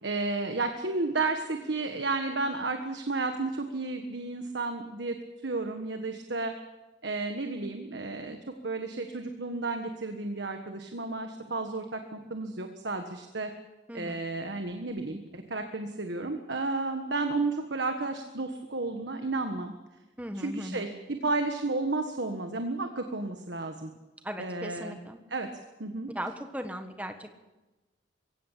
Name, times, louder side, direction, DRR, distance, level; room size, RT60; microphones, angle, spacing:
voice 1, 0.0-6.5 7.0-8.4 8.6-13.5 13.9-19.7 20.3-23.9 24.4-25.0 25.3-25.5 25.8-26.1, right 3 dB, 65° right, 6 dB, 1.5 m, -32 dB
voice 2, 13.9-14.2 20.2-20.9 24.2-25.2 26.1-27.3, equal, 10° right, 7 dB, 1.5 m, -38 dB
22.0 x 16.5 x 8.4 m, 1.1 s
head